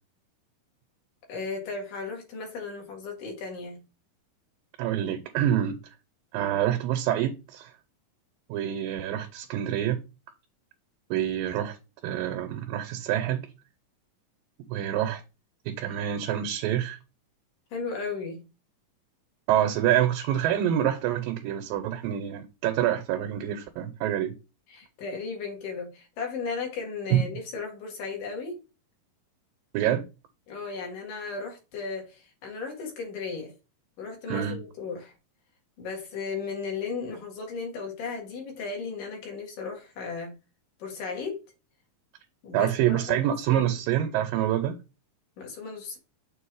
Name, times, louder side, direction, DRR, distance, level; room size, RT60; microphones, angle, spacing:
voice 1, 1.3-3.8 17.7-18.4 24.7-28.6 30.5-33.5 34.0-35.1 35.8-40.3 40.8-41.4 42.4-43.2 43.5-43.7 45.4-46.0, left 4 dB, 75° left, 3.3 m, -35 dB
voice 2, 4.8-5.8 6.3-7.7 8.5-10.0 11.1-11.8 12.0-13.5 14.7-15.2 15.7-17.0 19.5-24.3 27.1-27.2 29.7-30.1 34.3-34.6 42.5-44.8, right 11 dB, 90° right, 2.4 m, -26 dB
6.6 x 3.1 x 4.7 m
omnidirectional pair, 3.9 m